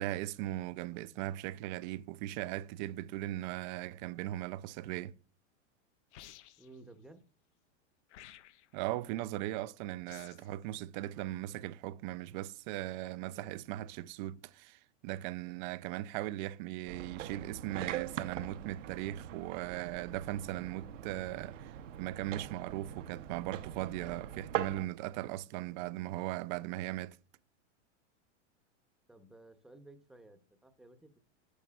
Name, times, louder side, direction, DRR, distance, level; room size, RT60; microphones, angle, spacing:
voice 1, 0.0-5.1 8.7-27.2, right 15 dB, 40° right, 0.4 m, -38 dB
sound 1, 6.1-6.8 8.1-8.8 10.1-10.5, left 13 dB, 70° left, 0.7 m, -54 dB
voice 2, 6.6-7.2 29.1-31.2, right 2 dB, ahead, 0.7 m, -55 dB
sound 2, 16.9-24.9, right 11 dB, 90° right, 0.8 m, -42 dB
11.0 x 7.9 x 2.3 m
supercardioid pair, 135°, 36 cm